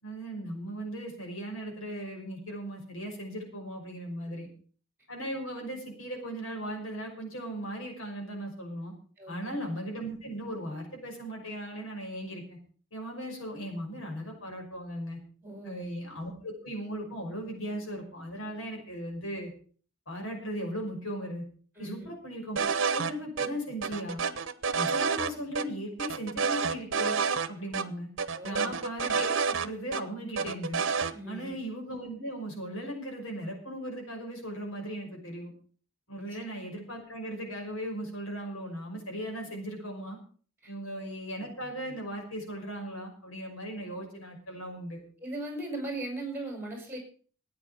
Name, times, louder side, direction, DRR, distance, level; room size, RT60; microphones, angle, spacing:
voice 1, 0.0-4.5 5.1-8.9 9.3-12.6 12.9-15.2 15.6-19.5 20.1-21.4 21.8-24.2 24.7-27.1 27.5-28.1 28.4-30.8 31.3-35.5 36.1-40.2 40.7-45.0, equal, 80° left, 2 dB, 6.0 m, -37 dB
voice 2, 9.2-9.5 15.4-15.9 21.8-22.1 28.3-28.8 31.1-31.6 36.2-36.3 40.6-40.7 45.2-47.0, right 2 dB, 10° right, 4 dB, 5.8 m, -38 dB
sound 1, 22.6-23.1 23.4-23.5 23.8-25.3 25.6-25.7 26.0-27.5 27.7-27.8 28.2-30.0 30.4-31.1, right 5 dB, 65° right, 1.0 m, -29 dB
14.5 x 9.4 x 7.0 m, 0.43 s
head